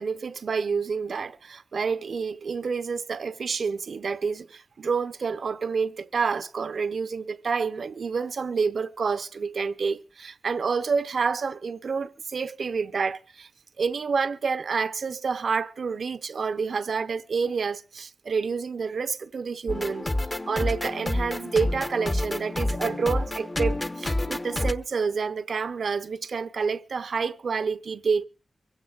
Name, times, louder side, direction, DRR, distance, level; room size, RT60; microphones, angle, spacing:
voice 1, 0.0-13.5 13.8-20.1 20.5-28.2, right 5 dB, 80° right, 0.7 m, -28 dB
sound 1, 19.7-24.7, left 1 dB, 30° left, 1.0 m, -28 dB
24.0 x 16.5 x 2.4 m
cardioid pair, 65°, 0 cm